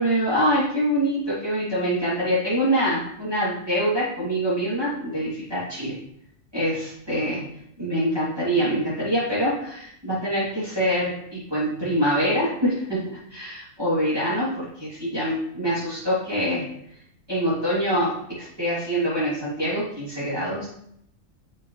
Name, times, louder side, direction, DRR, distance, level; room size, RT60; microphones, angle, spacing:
voice 1, 0.0-6.0 6.5-7.4 7.8-13.0 13.3-16.6 17.3-20.7, equal, 20° right, -12 dB, 3.1 m, -25 dB
7.9 x 5.7 x 3.3 m, 0.72 s
omnidirectional pair, 1.3 m